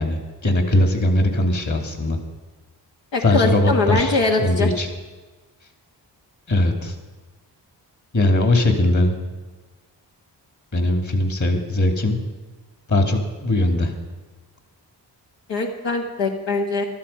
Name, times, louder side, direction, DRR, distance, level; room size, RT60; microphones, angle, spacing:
voice 1, 0.0-2.2 3.2-4.9 6.5-6.9 8.1-9.2 10.7-12.2 12.9-13.9, left 1 dB, 45° left, 5 dB, 2.7 m, -20 dB
voice 2, 3.1-4.7 15.5-16.8, left 3 dB, 80° left, 1 dB, 1.5 m, -22 dB
14.5 x 12.5 x 5.6 m, 1.3 s
cardioid pair, 65°, 42 cm